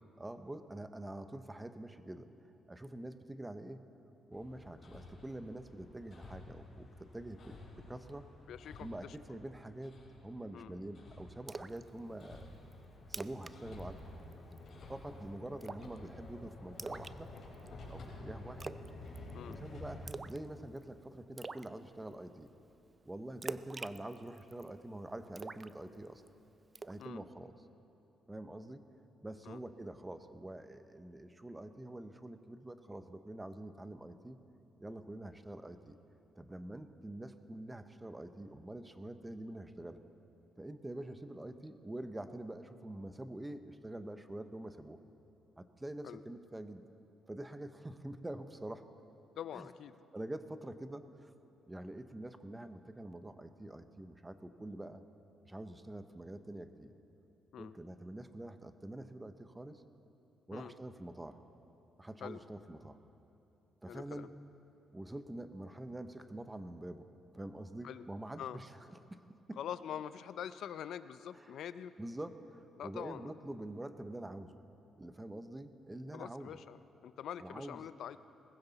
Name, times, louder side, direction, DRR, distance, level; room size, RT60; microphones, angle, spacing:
voice 1, 0.2-2.3 2.7-3.8 4.3-8.3 8.8-12.6 13.1-14.0 14.9-17.3 17.9-18.7 19.4-22.5 23.1-26.2 26.8-27.5 28.3-28.8 29.2-34.4 34.8-36.0 36.3-40.0 40.6-45.0 45.6-46.8 47.3-48.9 49.5-49.7 50.1-51.3 51.7-55.0 55.5-56.9 57.6-59.8 60.5-61.4 62.0-63.0 63.8-64.3 64.9-67.1 67.3-69.6 71.3-71.5 72.0-74.6 75.0-76.6 77.4-77.9, right 1 dB, 15° right, 10 dB, 0.7 m, -46 dB
Hammer, 4.3-20.0, left 2 dB, 55° left, 4.3 m, -51 dB
voice 2, 8.5-9.2 10.5-10.8 19.3-19.6 27.0-27.2 29.5-29.6 46.0-46.2 49.4-50.0 57.5-57.7 60.5-60.7 62.2-62.4 63.9-64.3 67.8-68.0 68.4-68.6 69.6-71.9 72.8-73.3 76.1-78.2, left 9 dB, 70° left, 13 dB, 0.4 m, -44 dB
Splash splatter, 11.5-11.8 12.2-12.3 12.7-12.8 13.1-13.5 13.8-14.0 14.3-14.7 15.6-16.0 16.8-17.7 18.6-18.9 19.2-19.5 20.1-20.5 20.8-20.9 21.4-21.7 23.4-24.7 25.4-26.3 26.8-27.0, right 3 dB, 30° right, 0.4 m, -44 dB
19.5 x 15.5 x 4.0 m, 2.9 s
cardioid pair, 90°, 0 cm